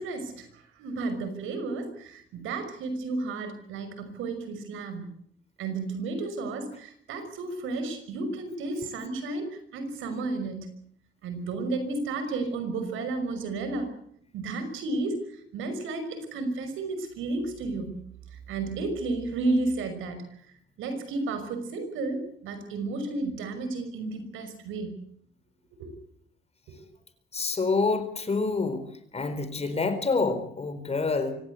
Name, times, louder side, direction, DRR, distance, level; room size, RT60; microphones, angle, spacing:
voice 1, 0.0-5.1 5.6-10.7 11.2-13.9 14.3-18.0 18.5-20.2 20.8-25.0 25.8-26.0 26.7-26.8, right 3 dB, 90° right, 9 dB, 5.8 m, -32 dB
voice 2, 27.3-28.8 29.1-31.3, left 3 dB, 30° left, 11 dB, 4.3 m, -27 dB
25.0 x 17.0 x 8.4 m, 0.64 s
cardioid pair, 90°, 20 cm